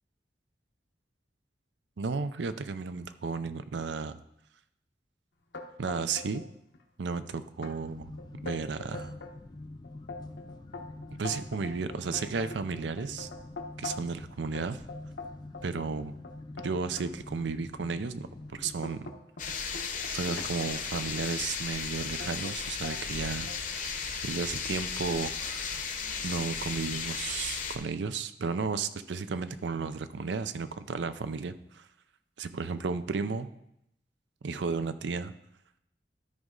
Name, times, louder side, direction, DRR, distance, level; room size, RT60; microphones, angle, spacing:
voice 1, 2.0-4.2 5.8-6.4 7.0-8.1 8.4-9.2 11.2-13.3 13.8-14.8 15.6-16.2 16.6-19.1 19.4-19.7 20.1-25.8 26.2-31.9 32.4-33.5 34.4-35.3, right 4 dB, 80° right, 12 dB, 0.5 m, -34 dB
sound 1, 5.5-6.5 6.7-7.3 7.6-7.7 8.2-9.4 9.8-14.2 14.5-17.1 17.7-17.9 18.3-21.4 22.2-22.6 22.8-23.6, left 3 dB, 75° left, 1.0 m, -43 dB
sound 2, 7.8-19.0, left 2 dB, 25° left, 0.4 m, -46 dB
sound 3, 19.4-27.8, left 6 dB, 45° left, 0.8 m, -35 dB
12.5 x 5.3 x 3.8 m, 0.79 s
head